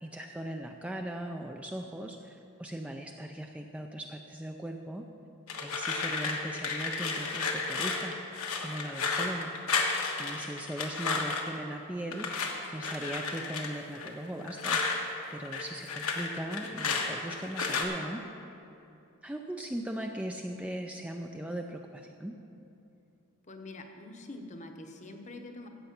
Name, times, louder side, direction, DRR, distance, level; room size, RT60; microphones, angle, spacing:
voice 1, 0.0-5.0 5.6-8.2 8.6-9.5 10.2-14.8 15.3-18.2 19.2-22.4, right 1 dB, 5° right, 2 dB, 0.4 m, -39 dB
sound 1, 5.5-11.6 12.1-15.0 15.3-17.8, left 4 dB, 80° left, 1.4 m, -32 dB
voice 2, 23.5-25.7, left 2 dB, 35° left, 4 dB, 0.9 m, -45 dB
14.0 x 8.1 x 5.9 m, 2.8 s
head